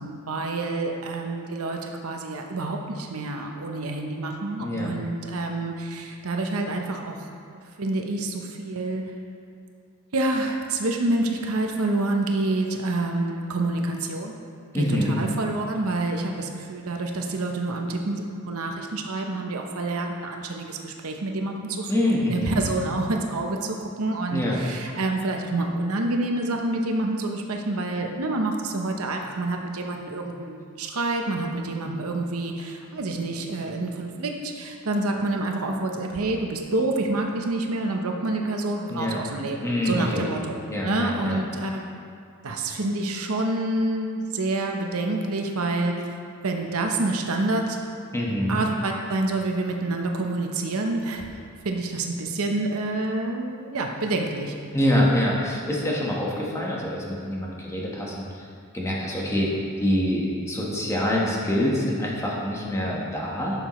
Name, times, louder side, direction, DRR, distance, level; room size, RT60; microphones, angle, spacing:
voice 1, 0.0-7.2 7.5-9.0 10.1-14.3 14.7-41.8 42.4-46.1 46.4-47.8 48.5-51.3 51.6-54.5, right 2 dB, 75° right, 2 dB, 0.8 m, -28 dB
voice 2, 4.6-4.9 14.7-15.2 21.9-22.7 24.3-24.6 38.9-39.2 39.6-40.3 40.7-41.4 48.1-48.6 54.7-58.5 58.7-59.5 59.8-63.6, left 1 dB, 15° left, -4 dB, 1.3 m, -25 dB
11.5 x 6.8 x 3.1 m, 2.3 s
head